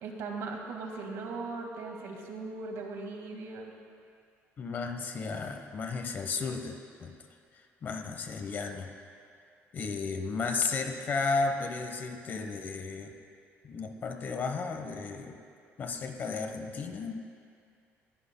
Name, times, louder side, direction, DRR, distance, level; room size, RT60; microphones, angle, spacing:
voice 1, 0.0-3.7, right 3 dB, 70° right, 2 dB, 1.8 m, -39 dB
voice 2, 4.6-7.2 7.5-8.9 9.7-13.1 13.6-15.4 15.8-17.2, left 4 dB, 40° left, 5 dB, 1.0 m, -34 dB
20.0 x 15.0 x 2.2 m, 2.3 s
cardioid pair, 140°, 5 cm